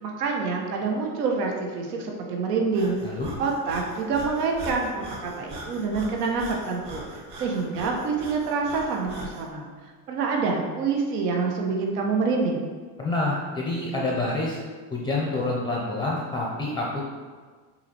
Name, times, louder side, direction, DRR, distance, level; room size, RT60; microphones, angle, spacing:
voice 1, 0.0-3.0 3.4-7.0 7.4-9.7 10.1-12.6, right 4 dB, 80° right, 1 dB, 1.3 m, -26 dB
Breathing, 2.7-9.5, right 1 dB, 45° right, 1.6 m, -41 dB
voice 2, 13.0-14.6 14.9-17.1, left 2 dB, 10° left, -2 dB, 0.5 m, -27 dB
6.3 x 4.3 x 4.4 m, 1.5 s
supercardioid pair, 145°, 46 cm